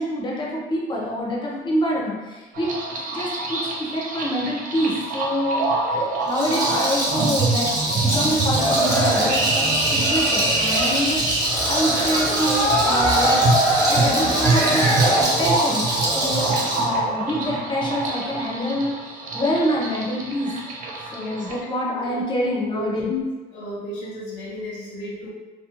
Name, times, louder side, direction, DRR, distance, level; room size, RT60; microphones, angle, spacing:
voice 1, 0.0-2.7 3.1-3.6 3.9-5.6 5.9-13.4 13.9-19.0 19.3-20.5 21.1-23.1, equal, 30° left, -3 dB, 0.7 m, -26 dB
sound 1, 2.5-21.6, right 3 dB, 55° right, 0.5 m, -27 dB
Rattle, 6.2-16.9, right 1 dB, 25° right, 0.8 m, -25 dB
sound 2, 8.5-15.2, right 1 dB, 85° right, 0.9 m, -22 dB
voice 2, 22.7-23.2 23.5-25.3, left 2 dB, 90° left, -6 dB, 0.6 m, -32 dB
2.5 x 2.2 x 2.8 m, 1.3 s
cardioid pair, 110°, 17 cm